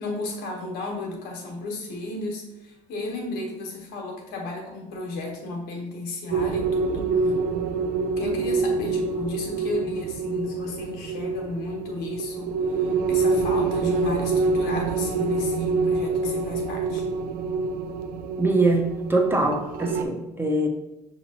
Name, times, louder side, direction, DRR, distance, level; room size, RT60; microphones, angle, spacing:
voice 1, 0.0-7.3 8.2-17.1, left 2 dB, 70° left, 1 dB, 1.0 m, -33 dB
sound 1, 6.3-20.0, right 4 dB, 60° right, 0.4 m, -26 dB
voice 2, 18.4-20.7, right 2 dB, 15° right, 1 dB, 0.8 m, -23 dB
5.7 x 2.7 x 2.8 m, 0.96 s
hypercardioid pair, 55°, 17 cm